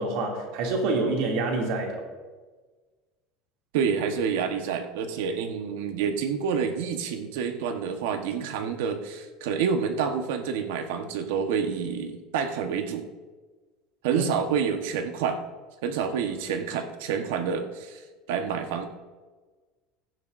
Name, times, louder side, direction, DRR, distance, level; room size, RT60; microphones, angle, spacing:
voice 1, 0.0-2.0 14.1-14.2, right 3 dB, 60° right, 0 dB, 2.5 m, -27 dB
voice 2, 3.7-13.0 14.0-15.4 15.8-18.0 18.3-18.9, right 6 dB, 85° right, 6 dB, 1.2 m, -28 dB
16.5 x 11.0 x 2.6 m, 1.3 s
cardioid pair, 175°, 0 cm